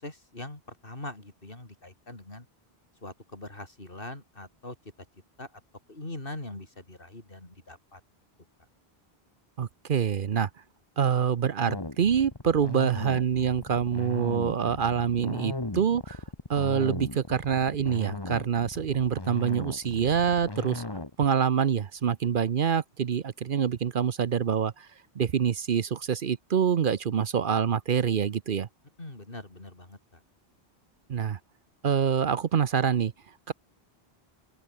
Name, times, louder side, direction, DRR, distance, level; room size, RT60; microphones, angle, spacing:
voice 1, 0.0-2.5 3.0-4.8 5.4-5.6 5.9-8.0 29.0-30.2, left 2 dB, 60° left, 4.7 m, -42 dB
voice 2, 9.6-10.5 11.0-16.2 16.5-20.8 21.2-24.9 25.2-28.7 31.1-31.4 31.8-33.1 33.5-33.6, right 7 dB, 60° right, 0.9 m, -26 dB
sound 1, 11.7-21.1, left 2 dB, 25° left, 1.7 m, -37 dB
open air
omnidirectional pair, 1.0 m